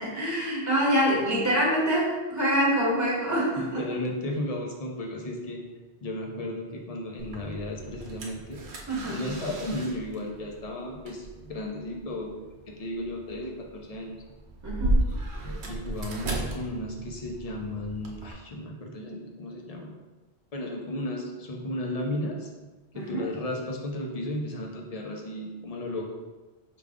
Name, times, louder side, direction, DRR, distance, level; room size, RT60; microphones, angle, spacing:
voice 1, 0.0-3.8 8.9-9.2 14.6-15.0 22.9-23.2, equal, 15° right, -6 dB, 1.1 m, -25 dB
voice 2, 3.6-5.6 6.0-8.6 9.0-12.3 12.7-14.2 15.0-19.9 20.5-22.5 22.9-26.1, left 1 dB, 40° left, 0 dB, 0.6 m, -34 dB
sound 1, 7.2-18.3, right 1 dB, 80° right, 1.0 m, -35 dB
5.0 x 2.3 x 3.5 m, 1.2 s
omnidirectional pair, 1.1 m